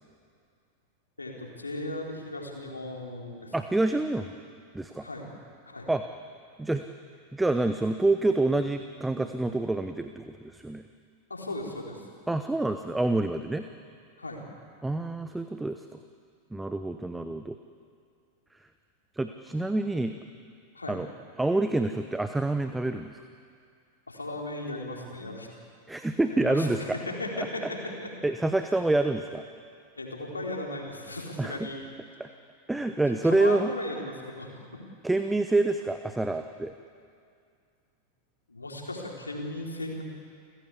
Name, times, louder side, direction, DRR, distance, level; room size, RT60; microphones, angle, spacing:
voice 1, 1.2-3.5 5.0-5.3 5.7-5.9 11.3-12.1 14.2-14.4 20.7-21.0 24.1-25.5 26.3-28.1 30.0-31.8 33.1-34.5 38.5-40.0, left 1 dB, 80° left, 0 dB, 3.8 m, -36 dB
voice 2, 3.5-4.3 4.7-5.1 5.9-6.0 6.6-6.8 7.3-10.8 12.3-13.7 14.8-15.8 16.5-17.6 19.1-20.1 20.9-21.1 21.4-23.2 25.9-27.0 27.4-27.7 28.2-29.4 31.4-31.6 32.2-32.3 32.7-33.7 35.0-36.7, right 2 dB, 5° right, 8 dB, 0.9 m, -27 dB
29.5 x 15.5 x 8.4 m, 2.3 s
figure-of-eight pair, 90°, 0 cm